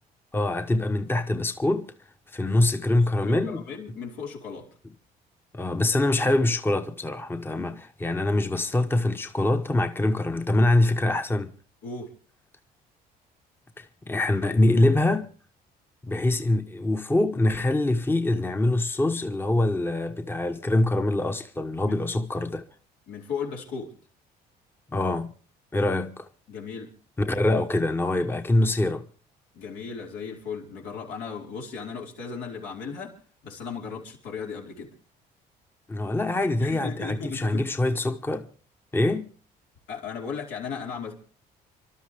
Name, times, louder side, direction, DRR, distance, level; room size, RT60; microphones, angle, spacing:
voice 1, 0.3-1.9 2.3-3.6 5.5-7.8 8.0-11.5 13.8-15.3 16.0-22.7 24.9-25.3 25.7-26.3 27.2-29.1 35.9-38.5 38.9-39.3, left 2 dB, 15° left, 1.0 m, -24 dB
voice 2, 2.9-4.7 7.5-7.7 11.8-12.1 21.8-22.0 23.1-23.9 26.5-26.9 29.5-33.2 33.4-34.9 36.6-37.7 39.9-41.2, left 5 dB, 85° left, 5.0 m, -36 dB
29.5 x 12.5 x 3.4 m
cardioid pair, 110°, 17 cm